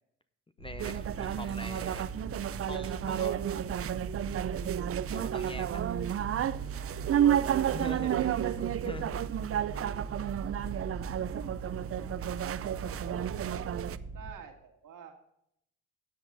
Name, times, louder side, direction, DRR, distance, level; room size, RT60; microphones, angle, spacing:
sound 1, 0.6-14.3, right 4 dB, 75° left, 5.1 m, -41 dB
voice 1, 0.6-2.1 2.6-3.5 5.1-5.9 7.7-8.2 8.8-9.1, left 2 dB, 15° left, 10 dB, 0.7 m, -43 dB
sound 2, 0.8-14.0, right 10 dB, 40° right, 0.5 m, -31 dB
voice 2, 1.3-1.8 5.6-7.3 8.0-8.6 9.6-9.8 11.4-13.8 14.1-15.2, right 7 dB, 60° right, 4 dB, 2.1 m, -50 dB
13.0 x 7.9 x 4.0 m, 0.77 s
hypercardioid pair, 50°, 35 cm